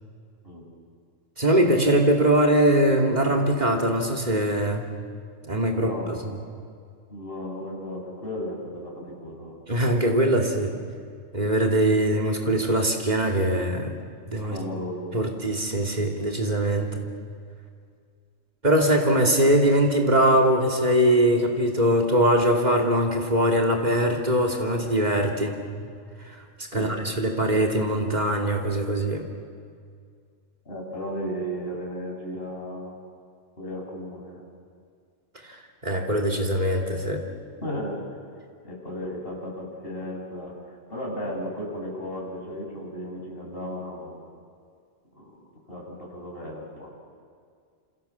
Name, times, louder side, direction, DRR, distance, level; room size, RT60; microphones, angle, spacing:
voice 1, 1.4-4.9 5.5-6.4 9.7-10.7 11.3-13.9 14.2-14.6 15.1-17.0 18.6-25.6 26.3-26.4 26.7-29.3 35.4-37.2, right 1 dB, 35° right, 1 dB, 3.0 m, -22 dB
voice 2, 5.7-6.2 7.1-9.6 14.4-15.2 26.7-27.1 30.7-32.9 33.6-34.4 37.6-38.0 38.6-44.2 45.2-45.4 45.7-46.9, equal, 50° left, -2 dB, 7.0 m, -35 dB
29.0 x 28.0 x 7.2 m, 2.2 s
omnidirectional pair, 1.3 m